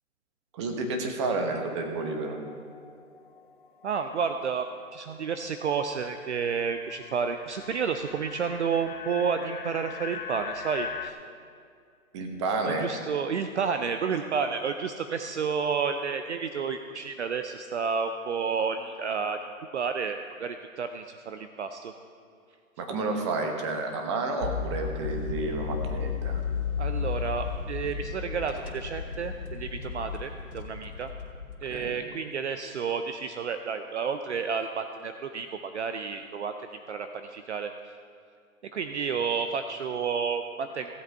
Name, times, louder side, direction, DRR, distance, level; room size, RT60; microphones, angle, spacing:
voice 1, 0.5-2.4 12.1-12.9 22.8-26.4 31.7-31.9, right 3 dB, 20° right, 3 dB, 1.1 m, -30 dB
sound 1, 2.0-5.3 5.7-11.1, left 7 dB, 35° left, 0.5 m, -42 dB
voice 2, 3.8-11.2 12.6-19.4 19.7-21.9 26.8-31.1 31.6-36.5 36.9-37.7 38.7-40.9, right 6 dB, 55° right, 7 dB, 0.6 m, -31 dB
sound 2, 24.4-31.9, left 6 dB, 55° left, 2.5 m, -34 dB
16.5 x 7.7 x 4.6 m, 2.3 s
hypercardioid pair, 155°, 43 cm